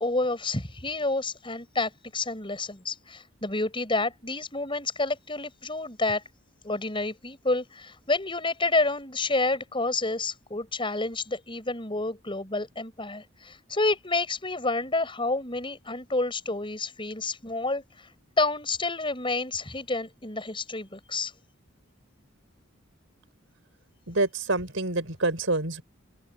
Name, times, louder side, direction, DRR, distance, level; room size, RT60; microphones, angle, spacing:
voice 1, 0.0-6.2 6.6-18.1 18.4-21.3, left 2 dB, 25° left, 6.4 m, -29 dB
voice 2, 24.1-25.8, right 2 dB, 70° right, 5.2 m, -27 dB
open air
head